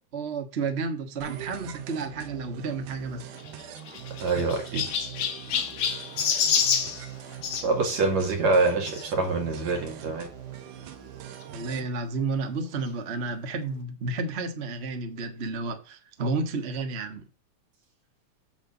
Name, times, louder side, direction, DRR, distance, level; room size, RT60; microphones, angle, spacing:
voice 1, 0.1-3.3 4.3-4.4 11.5-17.3, right 3 dB, 45° right, 0.8 m, -31 dB
sound 1, 1.2-11.9, right 12 dB, 90° right, 2.5 m, -42 dB
Chirp tweet, 3.4-7.7 8.8-9.0 9.7-9.8 10.0-10.1 11.4-11.5, left 7 dB, 85° left, 2.9 m, -28 dB
voice 2, 4.2-4.9 7.6-10.3, right 3 dB, 65° right, 3.3 m, -25 dB
8.3 x 7.3 x 4.0 m
omnidirectional pair, 3.5 m